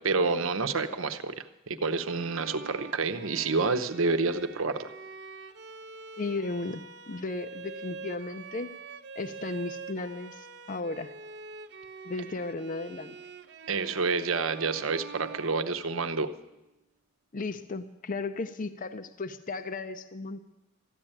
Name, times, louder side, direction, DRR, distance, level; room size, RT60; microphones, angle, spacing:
voice 1, 0.0-4.9 13.7-16.3, right 4 dB, 80° right, 8 dB, 0.9 m, -28 dB
Bowed string instrument, 2.0-16.3, right 4 dB, 55° right, 0.7 m, -45 dB
voice 2, 6.2-8.7 9.2-11.1 12.1-13.2 17.3-20.4, left 3 dB, 40° left, 11 dB, 0.5 m, -35 dB
14.0 x 10.0 x 8.8 m, 1.0 s
head